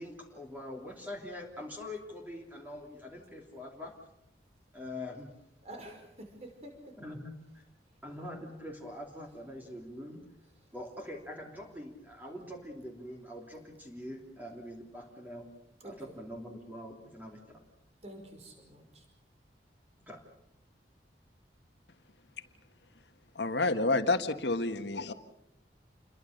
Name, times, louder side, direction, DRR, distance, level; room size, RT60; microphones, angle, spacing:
voice 1, 0.0-3.9 4.7-5.3 7.0-7.6 8.0-10.2 10.7-15.5 15.8-17.6 20.0-20.2, left 1 dB, 10° right, 0 dB, 3.0 m, -44 dB
voice 2, 5.6-7.0 15.8-16.2 18.0-19.0, right 1 dB, 35° right, 4 dB, 5.3 m, -48 dB
voice 3, 23.3-25.1, left 2 dB, 70° left, 8 dB, 1.7 m, -29 dB
28.5 x 22.0 x 6.7 m, 0.83 s
head